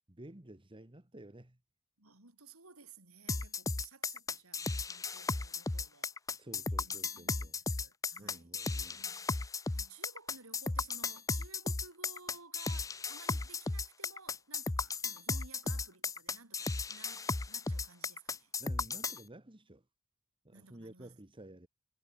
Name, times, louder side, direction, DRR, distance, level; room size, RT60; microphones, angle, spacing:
voice 1, 0.0-1.6 6.4-7.6 8.2-9.0 18.6-19.8 20.4-21.7, right 1 dB, 25° right, 1.7 m, -52 dB
voice 2, 2.0-6.2 6.8-9.3 9.7-18.5 20.5-21.2, right 4 dB, 80° right, 4.8 m, -57 dB
sound 1, 3.3-19.2, left 3 dB, 15° left, 0.5 m, -35 dB
head